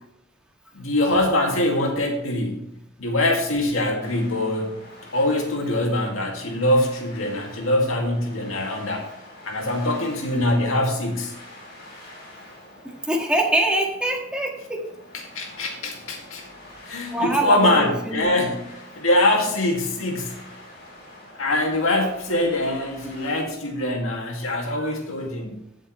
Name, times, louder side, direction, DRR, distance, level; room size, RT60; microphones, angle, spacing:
voice 1, 0.7-2.7 3.0-4.8 5.1-9.1 9.4-11.3 15.3-16.5 16.8-20.5 21.4-25.6, left 1 dB, 75° left, 1 dB, 2.3 m, -23 dB
sound 1, 4.0-23.4, left 1 dB, 55° left, 4.9 m, -46 dB
voice 2, 13.1-14.8 17.1-18.3 24.8-24.9, right 1 dB, 5° right, -1 dB, 1.8 m, -24 dB
16.0 x 7.6 x 3.2 m, 0.78 s
head